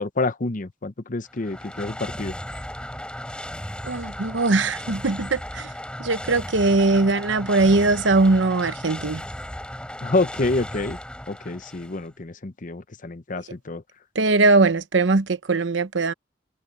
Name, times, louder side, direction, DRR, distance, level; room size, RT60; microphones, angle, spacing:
voice 1, 0.0-2.3 10.0-11.0 11.3-13.8, left 2 dB, 45° left, 0.9 m, -27 dB
sound 1, 1.3-12.1, left 1 dB, 5° left, 4.0 m, -36 dB
voice 2, 3.8-5.7 6.0-9.2 14.1-16.1, right 3 dB, 75° right, 0.9 m, -20 dB
head